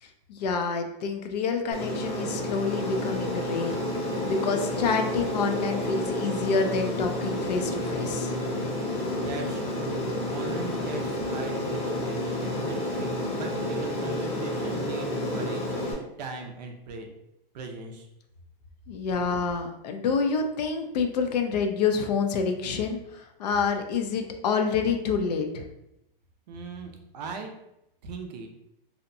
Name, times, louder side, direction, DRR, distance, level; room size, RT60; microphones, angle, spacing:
voice 1, 0.3-3.8 4.3-8.3 18.9-25.7, left 5 dB, 45° left, 5 dB, 0.4 m, -28 dB
Aircraft, 1.7-15.9, left 1 dB, 85° left, 1.1 m, -30 dB
voice 2, 9.1-17.1 17.5-18.1 26.5-27.5 28.0-28.5, right 4 dB, 45° right, 4 dB, 0.4 m, -39 dB
2.7 x 2.1 x 2.5 m, 0.84 s
hypercardioid pair, 160°, 29 cm